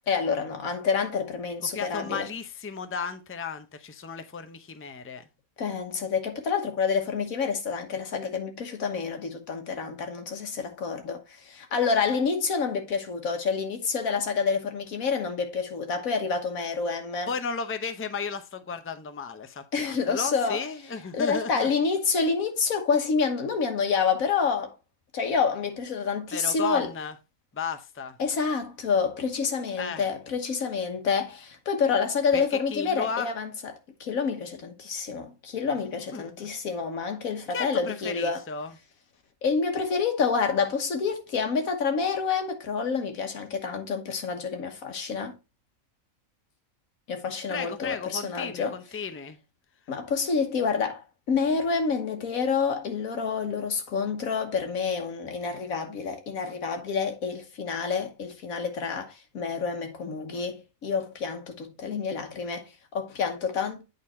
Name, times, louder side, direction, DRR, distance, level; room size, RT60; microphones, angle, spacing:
voice 1, 0.1-2.3 5.6-17.3 19.7-20.6 21.1-24.7 25.1-26.9 28.2-33.7 34.0-38.4 39.4-45.4 47.1-48.7 49.9-63.8, left 5 dB, 85° left, 1.6 m, -28 dB
voice 2, 1.7-5.2 17.3-21.7 26.3-27.1 27.5-28.2 29.8-30.0 32.3-32.4 32.7-33.3 36.1-36.5 37.5-38.7 47.5-49.4, left 5 dB, 15° left, 0.4 m, -34 dB
8.6 x 4.0 x 4.2 m
omnidirectional pair, 1.4 m